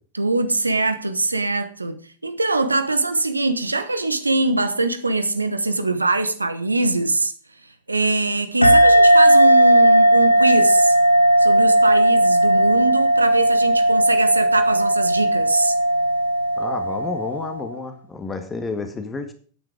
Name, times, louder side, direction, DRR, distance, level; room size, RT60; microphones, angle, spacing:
voice 1, 0.1-7.3 7.9-11.0 11.4-15.7, right 2 dB, 80° right, 1.0 m, -22 dB
sound 1, 8.6-17.7, right 1 dB, 90° left, 0.9 m, -16 dB
voice 2, 16.6-19.3, left 4 dB, 15° left, 1.8 m, -30 dB
10.5 x 9.0 x 5.0 m
figure-of-eight pair, 90°, 0 cm